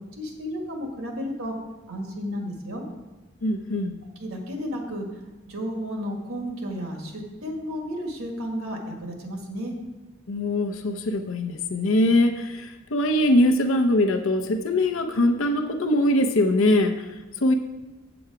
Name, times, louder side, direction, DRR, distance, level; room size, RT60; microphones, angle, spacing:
voice 1, 0.2-1.5 1.9-2.8 4.2-5.1 5.5-9.7, equal, 90° right, 2 dB, 1.8 m, -32 dB
voice 2, 3.4-3.9 10.3-17.1 17.4-17.5, left 1 dB, 75° left, 5 dB, 0.7 m, -22 dB
7.7 x 6.9 x 4.9 m, 1.1 s
head